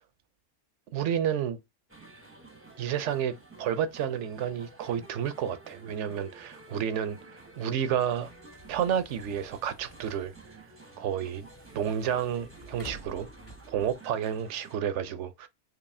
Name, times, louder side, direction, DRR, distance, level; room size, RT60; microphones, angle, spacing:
voice 1, 0.9-1.6 2.8-8.3 8.7-10.3 11.0-11.5 11.7-13.3 13.7-15.5, right 9 dB, 75° right, 0.9 m, -30 dB
sound 1, 1.9-14.8, right 3 dB, 15° right, 0.6 m, -51 dB
sound 2, 7.4-13.9, right 1 dB, 55° left, 2.0 m, -51 dB
4.7 x 2.7 x 2.6 m
omnidirectional pair, 1.2 m